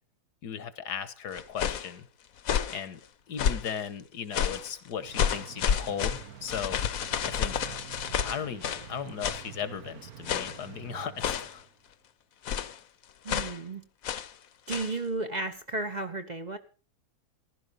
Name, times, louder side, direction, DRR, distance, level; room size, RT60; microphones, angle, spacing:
voice 1, 0.4-2.1 2.7-3.0 3.3-6.8 7.2-7.6 8.3-8.6 8.9-11.6, left 7 dB, 85° left, 14 dB, 1.8 m, -36 dB
sound 1, 1.3-1.9 2.4-2.8 3.4-3.8 4.3-4.7 5.1-8.9 9.2-9.5 10.2-10.6 11.2-11.6 12.4-12.8 13.3-13.6 14.0-14.3 14.7-14.9, left 8 dB, 65° left, 1.2 m, -30 dB
sound 2, 5.0-11.7, right 10 dB, 70° right, 1.6 m, -47 dB
voice 2, 13.2-13.8 14.7-16.6, right 3 dB, 30° right, 8 dB, 0.9 m, -33 dB
15.5 x 12.0 x 5.5 m, 0.37 s
omnidirectional pair, 1.7 m